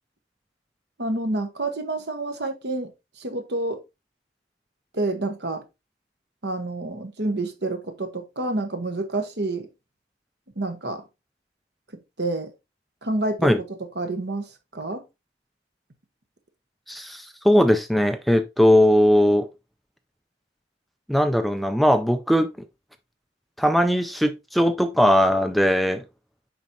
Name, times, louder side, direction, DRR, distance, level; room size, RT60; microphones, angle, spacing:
voice 1, 1.0-2.9 3.2-3.8 4.9-5.6 6.4-9.7 10.6-11.0 12.2-12.5 13.0-14.5 14.7-15.0, right 2 dB, 65° right, 1.2 m, -28 dB
voice 2, 16.9-19.5 21.1-22.5 23.6-26.0, equal, ahead, 0.4 m, -19 dB
7.2 x 5.3 x 2.7 m
head